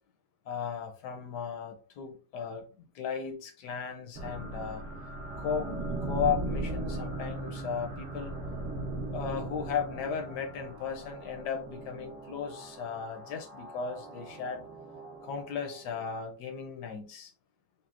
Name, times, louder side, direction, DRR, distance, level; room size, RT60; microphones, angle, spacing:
voice 1, 0.5-2.6 2.9-4.8 5.3-5.7 6.0-8.3 9.1-14.7 15.2-17.3, left 7 dB, 70° left, 4 dB, 1.0 m, -35 dB
sound 1, 4.2-16.1, right 2 dB, 80° right, 0.7 m, -39 dB
4.1 x 2.0 x 2.4 m, 0.36 s
omnidirectional pair, 2.2 m